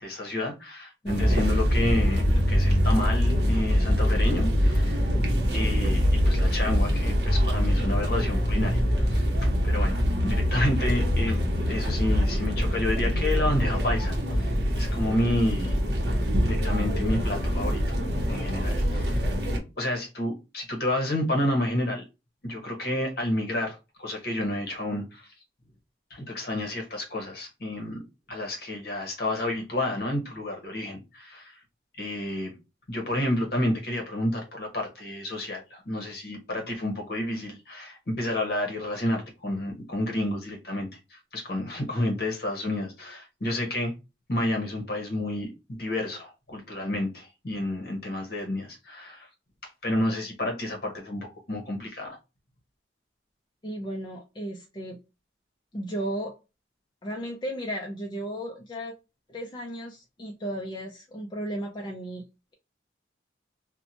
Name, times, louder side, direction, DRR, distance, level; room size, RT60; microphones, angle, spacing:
voice 1, 0.0-5.0 5.5-10.0 10.2-15.8 16.4-17.8 18.2-19.2 19.8-22.0 22.4-25.3 26.1-28.0 28.3-31.5 32.0-32.5 32.9-43.9 44.3-49.3 49.8-52.2, left 1 dB, 55° left, 0.9 m, -30 dB
voice 2, 1.0-1.4 53.6-55.0 55.7-56.4 57.0-58.9 59.3-62.2, right 1 dB, 25° left, 0.4 m, -34 dB
sound 1, 1.1-19.6, equal, 60° right, 0.7 m, -24 dB
2.8 x 2.1 x 2.6 m
head